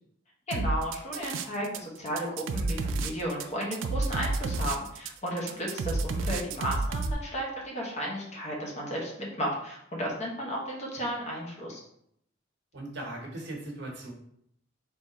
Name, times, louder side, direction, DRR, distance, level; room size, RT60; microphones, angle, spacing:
voice 1, 0.5-11.8, equal, 35° left, -2 dB, 1.0 m, -34 dB
sound 1, 0.5-1.8 2.1-7.1, right 3 dB, 80° right, 0.4 m, -30 dB
voice 2, 12.7-14.1, right 1 dB, 60° right, 0 dB, 1.2 m, -39 dB
3.8 x 2.9 x 4.2 m, 0.73 s
head